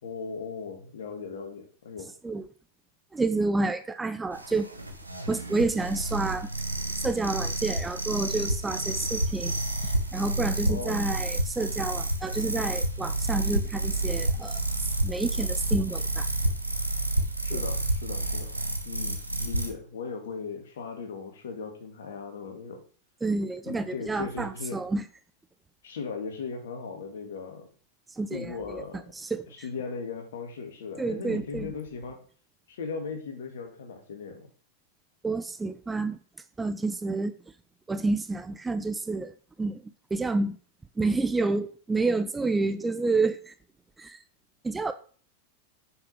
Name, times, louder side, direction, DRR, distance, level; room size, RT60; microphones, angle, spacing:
voice 1, 0.0-2.1 10.7-11.1 17.4-18.5 18.8-22.8 23.7-24.8 25.8-27.7 28.3-29.0 29.5-32.2 32.7-34.5, left 5 dB, 60° left, 4 dB, 2.7 m, -38 dB
voice 2, 3.1-4.7 5.3-6.5 7.0-9.5 10.1-14.6 15.0-16.3 17.5-17.6 23.2-25.0 28.2-28.8 29.2-29.5 31.0-31.7 35.2-36.2 36.6-37.3 37.9-39.3 39.6-39.8 40.1-40.6 41.0-43.5 44.0-44.2 44.6-44.9, right 3 dB, 10° right, 11 dB, 0.7 m, -29 dB
sound 1, 4.3-19.7, right 1 dB, 85° right, 1.5 m, -29 dB
7.6 x 6.7 x 5.8 m, 0.43 s
figure-of-eight pair, 90°, 0 cm